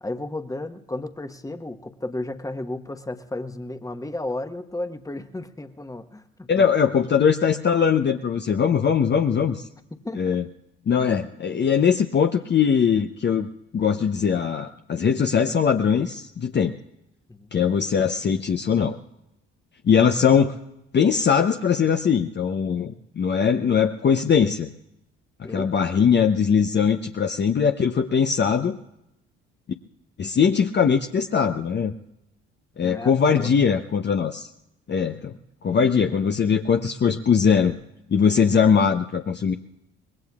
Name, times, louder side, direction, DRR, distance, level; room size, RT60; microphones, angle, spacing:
voice 1, 0.0-6.6 9.9-10.4 17.3-17.5 25.4-25.7 32.8-33.5 35.7-35.9, left 2 dB, 10° left, 8 dB, 1.2 m, -33 dB
voice 2, 6.5-9.7 10.2-10.4 10.9-13.5 13.7-16.7 17.5-19.0 19.8-20.5 20.9-24.7 25.5-28.8 30.2-31.9 32.8-34.5 34.9-35.4 35.6-37.8 38.1-39.5, left 7 dB, 35° left, 6 dB, 0.8 m, -21 dB
25.0 x 20.5 x 2.4 m, 0.84 s
hypercardioid pair, 55°, 32 cm